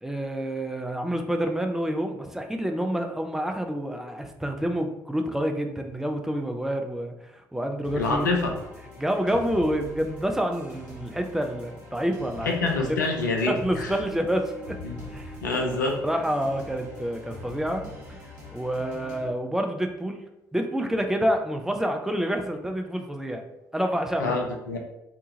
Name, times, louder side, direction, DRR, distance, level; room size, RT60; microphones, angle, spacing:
voice 1, 0.0-8.3 9.0-12.6 12.8-13.1 13.5-14.8 15.1-15.3 16.0-18.2 18.5-20.2 20.5-23.4 23.7-24.4, equal, 5° right, 4 dB, 0.4 m, -28 dB
sound 1, 7.8-19.3, left 1 dB, 85° right, 0.7 m, -42 dB
voice 2, 7.9-8.5 12.4-13.9 14.8-15.0 15.4-16.0 24.2-24.8, left 3 dB, 85° left, 2 dB, 0.4 m, -26 dB
2.7 x 2.3 x 2.7 m, 0.88 s
figure-of-eight pair, 45°, 10 cm